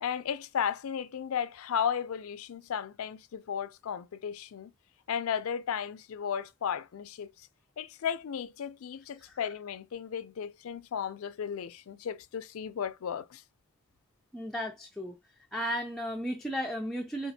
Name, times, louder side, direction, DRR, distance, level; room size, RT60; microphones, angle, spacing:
voice 1, 0.0-4.7 5.1-7.3 7.8-13.4, left 8 dB, 75° left, 0.4 m, -34 dB
voice 2, 14.3-15.2 15.5-17.3, equal, ahead, 0.4 m, -34 dB
5.1 x 2.4 x 2.7 m
head